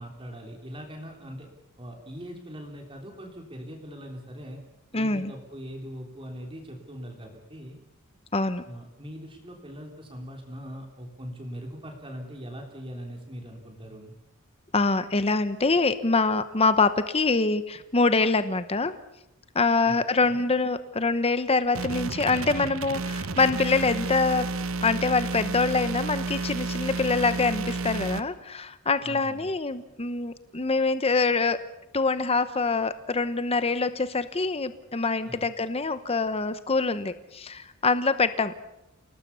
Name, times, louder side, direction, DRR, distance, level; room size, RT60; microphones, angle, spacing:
voice 1, 0.0-1.5 1.8-4.6 4.9-7.8 8.6-14.1 19.8-20.5 29.0-29.5 35.2-35.5, equal, 25° right, 2 dB, 3.3 m, -41 dB
voice 2, 4.9-5.3 8.3-8.6 14.7-18.9 19.5-24.5 24.8-31.6 31.9-38.5, left 3 dB, 25° left, 12 dB, 0.9 m, -25 dB
sound 1, 21.7-28.2, right 3 dB, 65° right, 1.2 m, -31 dB
28.5 x 18.5 x 7.0 m, 0.90 s
head